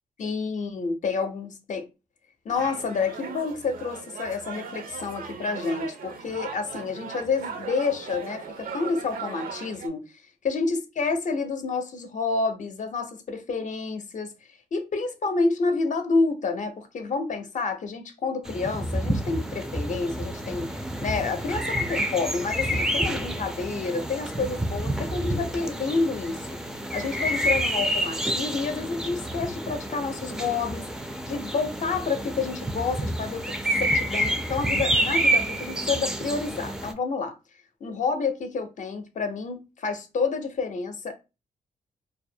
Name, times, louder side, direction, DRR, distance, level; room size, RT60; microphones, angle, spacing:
voice 1, 0.2-1.9 2.4-10.0 10.4-26.6 26.9-30.9 31.3-37.4 37.8-41.1, left 4 dB, 55° left, 0.6 m, -29 dB
sound 1, 2.5-9.9, right 6 dB, 75° right, 0.5 m, -38 dB
sound 2, 18.4-36.9, right 1 dB, 5° right, 0.3 m, -28 dB
2.3 x 2.0 x 2.6 m
cardioid pair, 65°, 15 cm